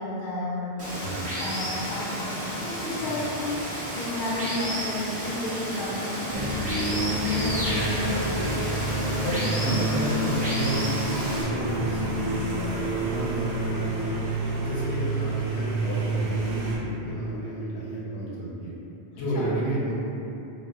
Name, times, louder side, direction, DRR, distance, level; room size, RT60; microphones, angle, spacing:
voice 1, 0.0-0.9 1.3-8.6 9.1-9.3 19.3-19.5, left 1 dB, 55° left, -6 dB, 0.6 m, -33 dB
Water, 0.8-11.4, equal, 10° right, 0.6 m, -32 dB
sound 1, 6.3-16.8, right 2 dB, 65° right, 0.7 m, -28 dB
voice 2, 7.7-8.1 9.2-14.1 14.5-18.7 19.1-19.9, right 1 dB, 90° left, -7 dB, 1.0 m, -31 dB
2.3 x 2.0 x 3.5 m, 2.9 s
omnidirectional pair, 1.1 m